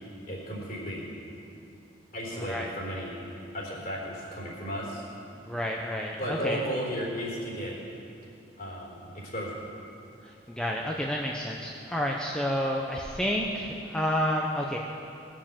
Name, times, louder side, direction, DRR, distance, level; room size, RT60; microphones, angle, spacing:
voice 1, 0.3-1.1 2.1-3.3 3.5-5.0 6.2-7.8 8.6-9.6, equal, 45° left, -3 dB, 3.8 m, -34 dB
voice 2, 2.3-2.7 5.5-6.6 10.2-14.8, equal, 5° left, -1 dB, 0.7 m, -30 dB
19.0 x 7.4 x 7.3 m, 2.7 s
head